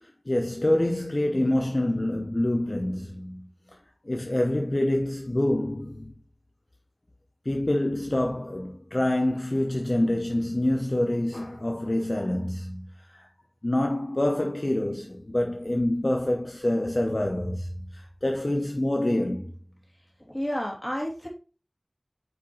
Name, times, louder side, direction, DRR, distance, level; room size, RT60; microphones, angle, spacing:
voice 1, 0.0-3.4 4.0-6.1 7.4-12.9 13.1-13.3 13.6-19.5, left 1 dB, 50° left, 0.8 m, -26 dB
voice 2, 20.3-21.3, equal, 15° left, 2.7 m, -30 dB
8.5 x 5.1 x 3.1 m
wide cardioid pair, 40°, 0 cm